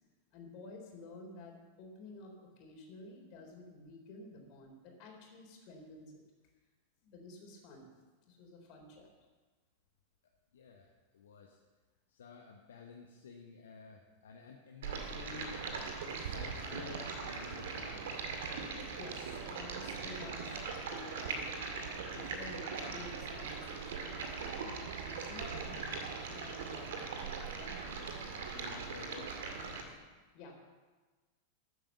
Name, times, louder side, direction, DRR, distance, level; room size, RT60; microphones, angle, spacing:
voice 1, 0.3-6.2 7.0-7.9 8.3-9.1 18.9-24.2 25.0-27.8 30.3-30.6, left 2 dB, 45° left, 1 dB, 3.9 m, -52 dB
voice 2, 10.5-10.9 11.1-11.6 12.1-15.6 16.0-18.1 27.8-29.9, left 6 dB, 65° left, 1 dB, 1.2 m, -52 dB
Stream, 14.8-29.8, right 4 dB, 60° right, 2.1 m, -40 dB
13.5 x 9.0 x 7.4 m, 1.3 s
figure-of-eight pair, 90°, 0 cm